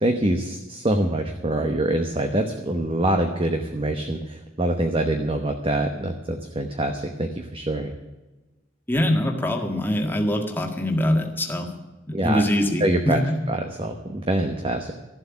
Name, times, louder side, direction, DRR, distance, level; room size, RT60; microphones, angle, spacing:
voice 1, 0.0-7.9 12.1-12.4 12.8-13.2 13.5-14.9, right 1 dB, 25° right, 5 dB, 1.0 m, -25 dB
voice 2, 8.9-11.7 12.1-13.4, left 1 dB, 10° left, 3 dB, 1.8 m, -23 dB
14.0 x 7.7 x 10.0 m, 1.1 s
head